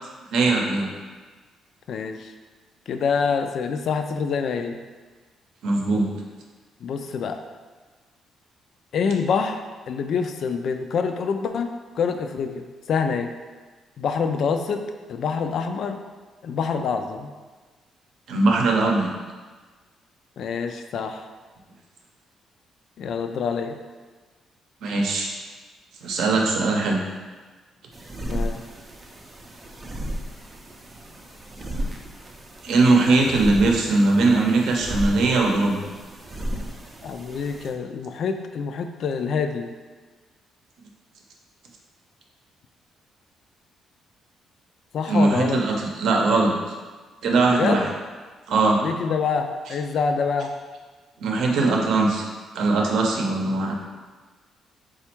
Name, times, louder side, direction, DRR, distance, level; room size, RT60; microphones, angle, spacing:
voice 1, 0.3-0.9 5.6-6.1 18.3-19.1 24.8-25.3 26.0-27.0 32.6-35.8 45.1-46.5 47.2-47.9 48.5-48.8 51.2-52.3 52.5-53.7, right 3 dB, 75° right, 0 dB, 0.7 m, -20 dB
voice 2, 1.9-2.3 2.9-4.8 6.8-7.4 8.9-13.3 14.0-14.8 15.1-16.0 16.4-17.3 20.4-21.2 23.0-23.8 28.3-28.6 37.0-39.7 44.9-45.6 47.5-47.9 48.8-50.5, left 5 dB, 60° left, 7 dB, 0.3 m, -26 dB
sound 1, 27.9-37.7, equal, 20° right, 0.4 m, -34 dB
4.2 x 2.3 x 4.4 m, 1.4 s
cardioid pair, 140°, 0 cm